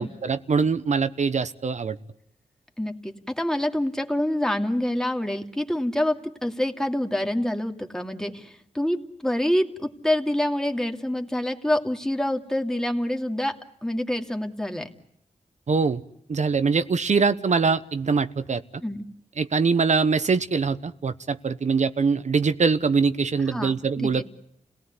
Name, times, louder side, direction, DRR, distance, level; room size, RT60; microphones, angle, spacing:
voice 1, 0.0-2.0 15.7-16.0 16.3-18.6 19.4-24.3, right 5 dB, 60° right, 11 dB, 1.1 m, -23 dB
voice 2, 2.8-13.6 13.8-14.9 18.8-19.0 23.5-24.3, left 1 dB, 5° left, 4 dB, 2.5 m, -26 dB
30.0 x 18.0 x 9.6 m, 0.75 s
cardioid pair, 65°, 14 cm